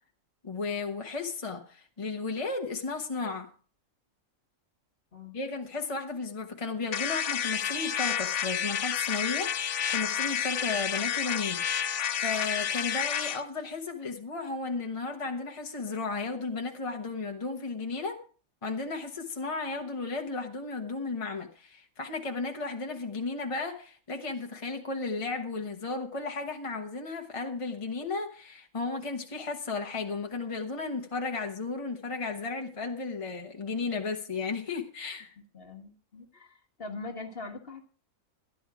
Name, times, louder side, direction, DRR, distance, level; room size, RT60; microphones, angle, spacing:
voice 1, 0.4-3.5 5.3-18.2 18.6-35.3, left 4 dB, 25° left, 1.2 m, -34 dB
sound 1, 6.9-13.4, left 9 dB, 65° left, 1.0 m, -30 dB
voice 2, 35.4-37.8, left 3 dB, 45° left, 1.7 m, -42 dB
12.0 x 11.0 x 4.9 m
omnidirectional pair, 1.4 m